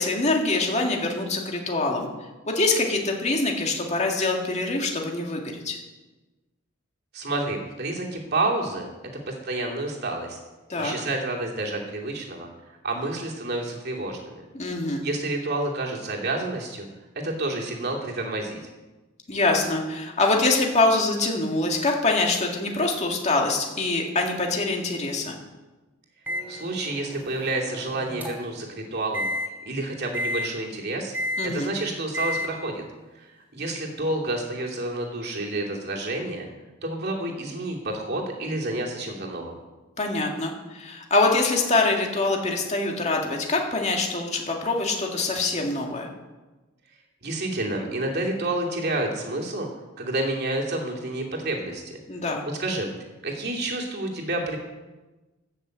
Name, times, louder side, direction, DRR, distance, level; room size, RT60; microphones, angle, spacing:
voice 1, 0.0-2.1 2.4-5.8 10.7-10.9 14.5-15.0 19.3-25.4 31.4-31.7 40.0-46.1 52.1-52.4, left 2 dB, 35° left, 1 dB, 2.1 m, -24 dB
voice 2, 7.1-8.9 9.3-10.4 10.8-12.5 12.8-14.4 15.0-16.9 17.2-18.6 26.5-29.3 29.7-31.1 31.4-32.8 33.2-36.5 36.8-39.5 47.2-49.7 50.0-51.9 52.4-52.9 53.2-54.6, right 2 dB, 55° right, -1 dB, 2.7 m, -29 dB
Microwave oven, 26.3-28.6 29.1-29.5 30.1-30.5 31.1-31.5 32.1-32.5, left 1 dB, 10° right, 2.9 m, -31 dB
14.5 x 6.6 x 7.9 m, 1.2 s
head